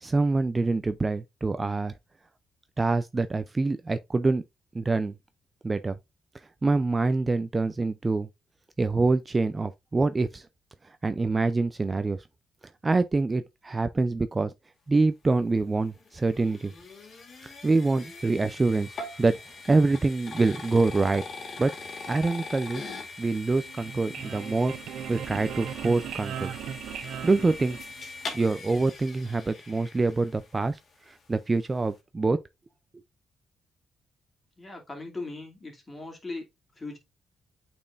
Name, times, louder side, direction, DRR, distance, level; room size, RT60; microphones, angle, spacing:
voice 1, 0.0-1.9 2.8-4.4 4.7-5.1 5.6-6.0 6.6-8.3 8.8-10.4 11.0-12.2 12.8-14.5 14.9-16.7 17.6-19.4 19.7-21.2 21.6-21.7 22.1-22.8 23.2-24.7 25.1-26.5 27.2-27.8 28.3-30.8 31.3-32.4, right 3 dB, 25° right, 0.5 m, -25 dB
sound 1, 15.5-30.7, left 3 dB, 50° left, 2.0 m, -42 dB
sound 2, 23.6-28.3, right 9 dB, 75° right, 0.6 m, -38 dB
voice 2, 34.6-36.5 36.8-37.0, left 3 dB, 25° left, 2.5 m, -39 dB
8.5 x 4.4 x 2.5 m
cardioid pair, 90°, 0 cm